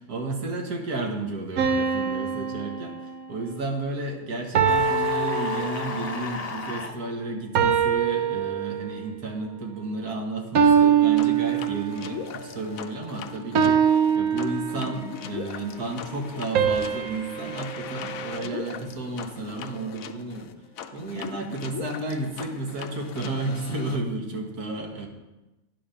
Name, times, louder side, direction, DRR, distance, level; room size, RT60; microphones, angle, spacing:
voice 1, 0.1-20.5 20.9-25.1, right 2 dB, 90° right, 2 dB, 1.9 m, -32 dB
sound 1, 1.6-3.5 4.5-6.2 7.5-9.1 10.5-12.2 13.5-15.2 16.5-18.9, right 7 dB, 75° right, 1.3 m, -24 dB
sound 2, 4.6-7.0, left 4 dB, 40° left, 0.6 m, -34 dB
sound 3, 11.2-24.0, left 8 dB, 70° left, 1.0 m, -40 dB
10.5 x 6.4 x 5.7 m, 1.0 s
omnidirectional pair, 1.6 m